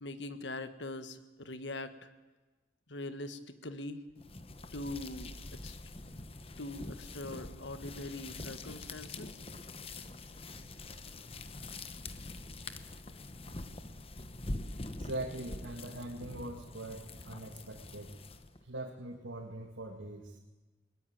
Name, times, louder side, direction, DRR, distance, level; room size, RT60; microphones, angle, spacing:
voice 1, 0.0-2.1 2.9-4.0 4.7-5.8 6.6-9.4, left 2 dB, 75° left, 10 dB, 1.5 m, -42 dB
sound 1, 4.2-18.6, left 2 dB, 30° left, 1.1 m, -45 dB
voice 2, 15.0-18.1 18.6-20.4, right 1 dB, 85° right, 1 dB, 2.2 m, -42 dB
21.5 x 21.0 x 8.9 m, 1.2 s
head